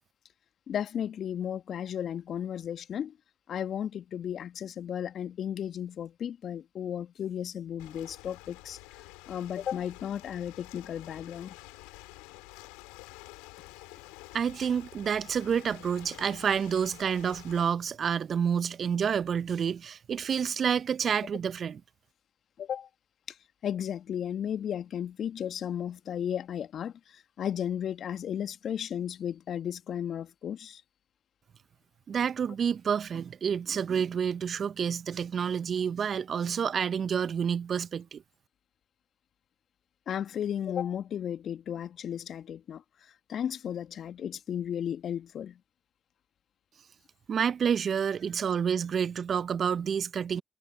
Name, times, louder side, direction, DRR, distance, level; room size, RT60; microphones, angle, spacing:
voice 1, 0.7-3.1 3.5-8.8 9.3-11.6 22.6-22.9 23.3-23.4 23.6-30.8 40.1-42.8 43.3-45.6, left 9 dB, 60° left, 1.7 m, -34 dB
Ocean, 7.8-17.6, left 26 dB, 80° left, 4.5 m, -49 dB
voice 2, 14.3-21.8 32.1-38.2 47.3-50.4, right 7 dB, 55° right, 0.9 m, -29 dB
hypercardioid pair, 45°, 0 cm